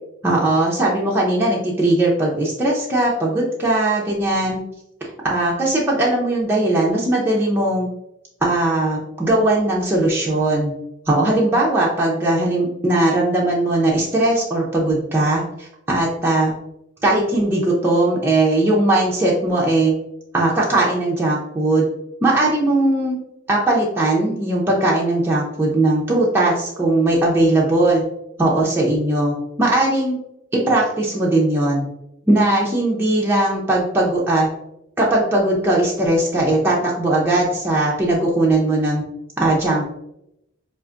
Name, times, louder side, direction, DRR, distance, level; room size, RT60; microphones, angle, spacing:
voice 1, 0.2-4.6 5.2-7.9 8.4-10.7 11.1-16.5 17.0-19.9 20.3-21.9 22.2-23.2 23.5-28.0 28.4-30.2 30.7-31.9 32.3-34.5 35.0-39.0 39.4-39.8, right 2 dB, 10° right, -4 dB, 0.5 m, -19 dB
4.7 x 2.5 x 2.4 m, 0.81 s
head